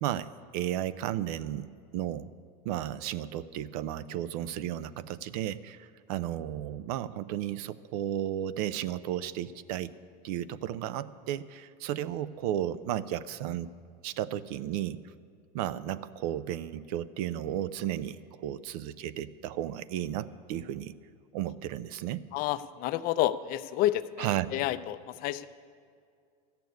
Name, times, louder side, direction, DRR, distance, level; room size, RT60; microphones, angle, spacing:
voice 1, 0.0-1.7 1.9-2.3 2.6-9.9 10.2-13.7 14.0-15.0 15.5-20.9 21.3-22.2 24.2-24.5, right 12 dB, 70° right, 16 dB, 0.6 m, -34 dB
voice 2, 22.3-25.5, left 14 dB, 45° left, 13 dB, 0.5 m, -30 dB
13.5 x 6.9 x 9.3 m, 2.2 s
supercardioid pair, 130°, 21 cm